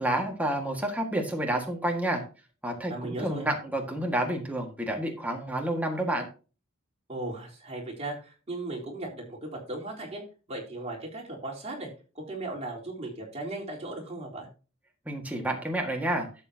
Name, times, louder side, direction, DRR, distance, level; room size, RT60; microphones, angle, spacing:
voice 1, 0.0-2.2 2.6-6.3 15.1-16.3, right 1 dB, 5° right, 2 dB, 1.7 m, -29 dB
voice 2, 2.9-3.4 7.1-10.2 10.5-11.9 12.2-14.5, right 2 dB, 30° right, -2 dB, 3.8 m, -37 dB
12.5 x 8.3 x 2.8 m, 0.34 s
head